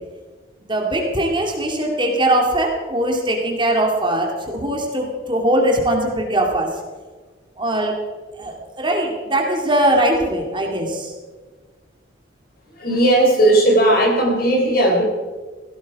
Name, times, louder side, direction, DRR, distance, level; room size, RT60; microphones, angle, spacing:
voice 1, 0.6-6.7 7.6-8.0 8.4-11.1, right 1 dB, 25° right, 1 dB, 2.5 m, -20 dB
voice 2, 12.7-15.1, right 1 dB, 50° left, 0 dB, 4.1 m, -16 dB
17.0 x 16.5 x 4.8 m, 1.4 s
head